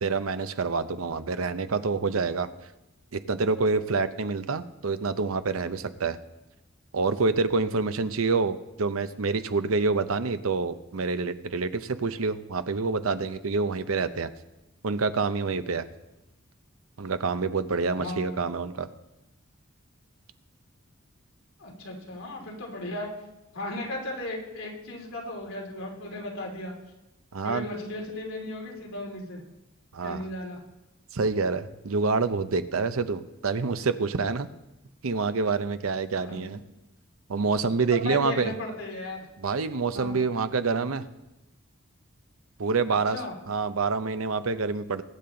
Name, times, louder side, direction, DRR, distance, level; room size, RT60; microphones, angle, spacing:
voice 1, 0.0-2.5 3.1-6.2 6.9-14.3 14.8-15.9 17.0-18.9 27.3-27.7 29.9-30.3 31.1-34.5 35.0-36.6 37.3-38.5 39.4-41.1 42.6-43.2 43.5-45.0, right 4 dB, 90° right, 11 dB, 0.7 m, -27 dB
voice 2, 18.0-18.4 21.6-23.1 23.5-26.7 27.4-29.4 30.0-30.6 36.1-36.5 37.9-39.2 39.9-40.1 43.1-43.3, left 1 dB, 80° left, -1 dB, 3.0 m, -36 dB
21.0 x 8.6 x 3.9 m, 0.97 s
head